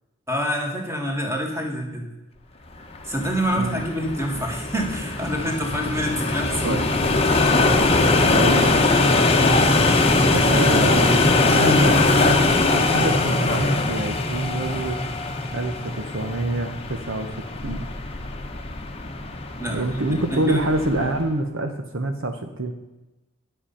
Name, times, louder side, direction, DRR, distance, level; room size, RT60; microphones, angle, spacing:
voice 1, 0.3-2.1 3.0-7.1 9.7-10.0 19.6-20.6, equal, 10° right, 1 dB, 1.9 m, -27 dB
sound 1, 2.9-21.2, left 2 dB, 25° left, 1.0 m, -21 dB
voice 2, 8.2-9.0 10.3-11.1 11.5-12.4 12.7-15.0 15.5-17.3 17.6-17.9 19.7-22.7, right 2 dB, 55° right, 5 dB, 0.9 m, -26 dB
10.5 x 7.8 x 5.6 m, 1.1 s
head